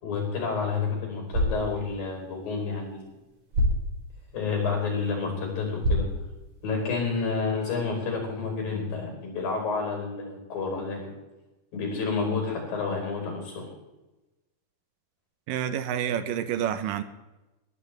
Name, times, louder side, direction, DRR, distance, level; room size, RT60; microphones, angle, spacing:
voice 1, 0.0-3.1 4.3-6.1 6.6-11.1 11.7-13.7, left 4 dB, 85° left, 0 dB, 6.6 m, -29 dB
sound 1, 1.1-7.2, equal, 50° right, 5.0 m, -31 dB
voice 2, 15.5-17.0, right 9 dB, 80° right, 11 dB, 2.5 m, -28 dB
21.5 x 12.5 x 3.4 m, 1.0 s
omnidirectional pair, 4.0 m